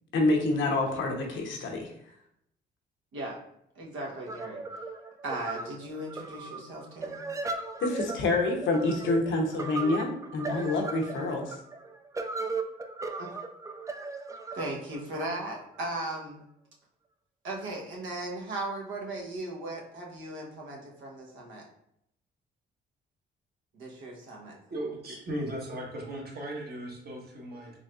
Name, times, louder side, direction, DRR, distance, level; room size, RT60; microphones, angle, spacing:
voice 1, 0.1-1.9 7.8-11.6, left 2 dB, 75° left, 1 dB, 0.8 m, -27 dB
voice 2, 3.1-3.4 3.7-4.6 5.2-7.2 13.2-13.3 14.5-16.4 17.4-21.7 23.7-24.6, right 2 dB, 75° right, -1 dB, 1.0 m, -37 dB
sound 1, 4.3-15.9, right 3 dB, 15° right, 0.3 m, -37 dB
voice 3, 24.7-27.7, right 1 dB, 50° right, -2 dB, 1.3 m, -37 dB
4.0 x 3.1 x 2.4 m, 0.74 s
cardioid pair, 90°, 20 cm